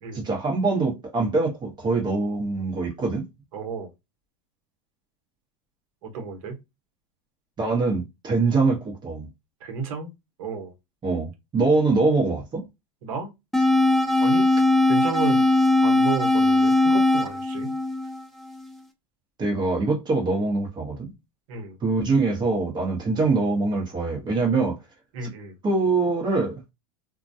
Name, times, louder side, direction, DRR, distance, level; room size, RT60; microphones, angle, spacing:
voice 1, 0.1-3.3 7.6-9.3 11.0-12.6 19.4-21.1 21.8-24.8 25.2-25.3 25.6-26.6, right 3 dB, 25° right, 0.9 m, -23 dB
voice 2, 3.5-3.9 6.0-6.6 9.6-10.1 10.4-10.7 13.0-13.3 14.2-14.5 14.9-15.5 15.8-17.7 21.5-21.8 25.1-25.5, right 5 dB, 65° right, 1.0 m, -32 dB
sound 1, 13.5-18.6, left 2 dB, ahead, 0.4 m, -20 dB
2.2 x 2.1 x 2.7 m
supercardioid pair, 120°, 19 cm